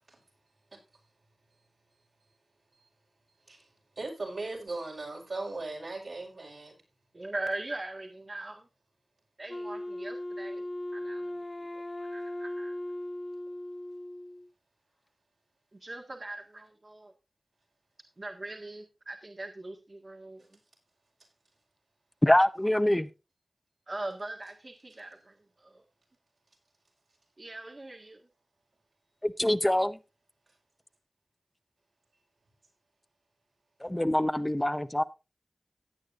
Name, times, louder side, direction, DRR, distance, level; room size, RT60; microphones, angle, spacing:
voice 1, 3.5-6.8, right 2 dB, 85° right, 5.3 m, -38 dB
voice 2, 7.1-8.6 9.4-10.6 10.9-11.2 11.7-12.7 15.7-17.1 18.2-20.5 23.9-25.8 27.4-28.3, right 2 dB, 50° right, 1.7 m, -41 dB
Wind instrument woodwind instrument, 9.5-14.5, left 1 dB, 40° left, 1.2 m, -38 dB
voice 3, 22.2-23.1 29.2-30.0 33.8-35.0, left 1 dB, 20° left, 0.8 m, -25 dB
17.0 x 8.9 x 2.5 m
cardioid pair, 40°, 0 cm